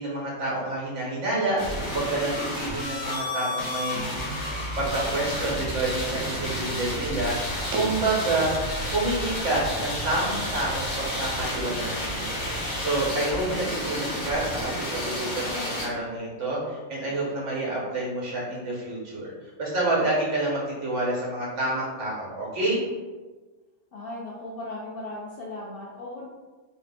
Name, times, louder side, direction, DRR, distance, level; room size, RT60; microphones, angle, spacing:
voice 1, 0.0-4.1 4.8-8.5 8.9-22.8, right 2 dB, 55° right, -5 dB, 1.4 m, -28 dB
sound 1, 1.6-15.8, left 1 dB, 35° left, 1.0 m, -31 dB
sound 2, 3.3-10.7 11.0-11.8, right 2 dB, 90° right, 1.1 m, -42 dB
voice 2, 23.9-26.3, left 1 dB, 70° left, -5 dB, 0.5 m, -37 dB
3.2 x 2.5 x 3.4 m, 1.3 s
omnidirectional pair, 1.5 m